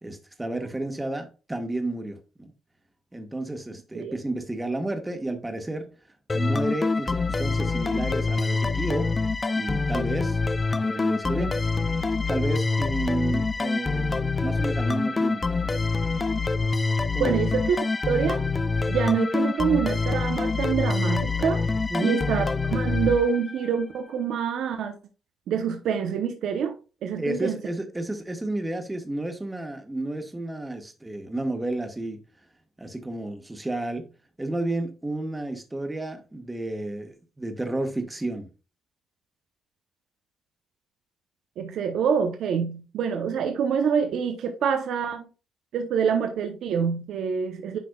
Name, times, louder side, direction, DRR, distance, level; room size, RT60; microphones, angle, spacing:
voice 1, 0.0-2.5 3.1-5.9 6.3-9.1 9.5-10.4 10.7-11.6 12.3-15.8 17.1-17.4 21.9-22.2 27.2-32.2 32.8-34.1 34.4-38.5, right 1 dB, 15° right, 1.4 m, -31 dB
sound 1, 6.3-23.8, left 3 dB, 25° left, 0.5 m, -26 dB
voice 2, 17.2-17.8 18.1-18.4 18.9-21.6 22.0-25.0 25.5-27.6 41.6-45.3 45.7-47.8, right 7 dB, 75° right, 0.8 m, -26 dB
10.5 x 4.2 x 2.3 m
cardioid pair, 90°, 0 cm